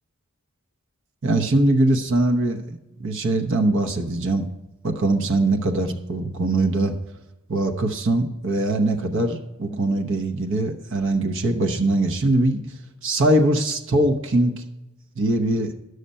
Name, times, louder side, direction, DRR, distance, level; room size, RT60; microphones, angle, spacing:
voice 1, 1.2-4.5 4.8-6.9 7.5-12.6 13.0-14.5 15.2-15.7, right 2 dB, 60° right, 5 dB, 0.9 m, -22 dB
11.5 x 6.6 x 5.4 m, 1.0 s
head